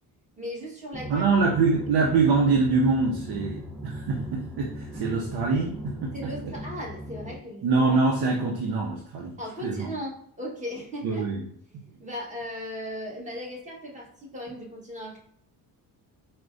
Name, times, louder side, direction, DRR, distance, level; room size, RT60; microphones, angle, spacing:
voice 1, 0.4-1.3 6.1-7.7 9.4-11.4 11.8-15.2, equal, 20° right, -3 dB, 1.3 m, -37 dB
sound 1, 0.9-7.4, equal, ahead, 0.6 m, -39 dB
voice 2, 1.1-6.5 7.6-9.4 9.6-9.9 11.0-11.4, right 4 dB, 65° right, -1 dB, 0.7 m, -24 dB
4.5 x 2.2 x 2.5 m, 0.66 s
cardioid pair, 90°, 40 cm